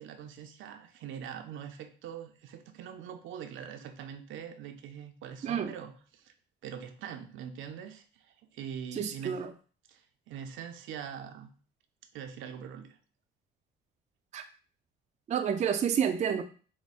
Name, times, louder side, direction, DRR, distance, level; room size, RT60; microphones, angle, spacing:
voice 1, 0.0-6.3 6.6-9.4 9.9-11.5 12.1-13.0, right 8 dB, 75° right, 7 dB, 0.6 m, -43 dB
voice 2, 9.0-9.5 14.3-14.4 15.3-16.4, right 8 dB, 35° right, 7 dB, 0.4 m, -29 dB
4.8 x 2.1 x 4.1 m, 0.41 s
cardioid pair, 100°, 20 cm